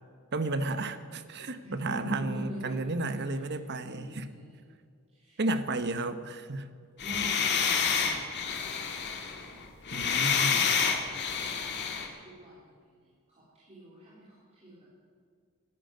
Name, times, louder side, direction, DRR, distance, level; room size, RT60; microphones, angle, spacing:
voice 1, 0.3-4.3 5.4-6.7 9.9-10.7, right 2 dB, 50° right, 11 dB, 1.0 m, -32 dB
voice 2, 1.6-2.9 3.4-3.5 3.8-4.6 5.1-5.4 7.0-8.6 10.1-12.7 13.0-14.9, right 1 dB, 30° right, -8 dB, 3.5 m, -44 dB
sound 1, 7.0-12.1, left 6 dB, 50° left, 1.9 m, -28 dB
13.5 x 10.5 x 9.4 m, 2.1 s
head